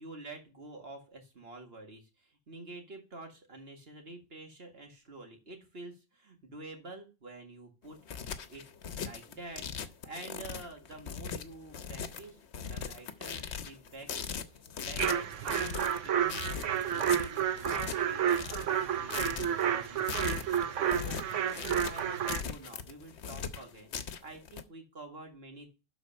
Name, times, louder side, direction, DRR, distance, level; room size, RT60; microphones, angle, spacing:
voice 1, 0.0-8.0 8.5-8.6 9.0-12.4 12.7-14.1 14.5-25.7, right 2 dB, 55° right, 3 dB, 2.1 m, -48 dB
sound 1, 7.8-24.6, left 7 dB, 65° left, 1.0 m, -40 dB
sound 2, 15.0-22.4, right 9 dB, 75° right, 1.1 m, -31 dB
11.5 x 4.1 x 5.3 m, 0.30 s
omnidirectional pair, 1.3 m